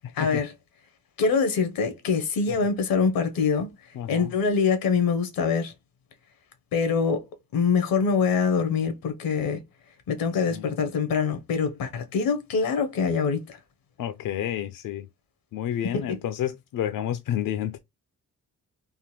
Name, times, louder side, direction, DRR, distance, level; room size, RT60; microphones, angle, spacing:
voice 1, 0.1-0.5 1.2-3.7 4.1-5.7 6.7-7.2 7.5-9.6 10.1-13.6 15.9-16.2, left 5 dB, 85° left, 0.9 m, -24 dB
voice 2, 3.9-4.3 10.3-10.7 14.0-15.1 15.5-17.8, left 10 dB, 70° left, 0.5 m, -30 dB
3.6 x 2.1 x 2.9 m
cardioid pair, 75°, 34 cm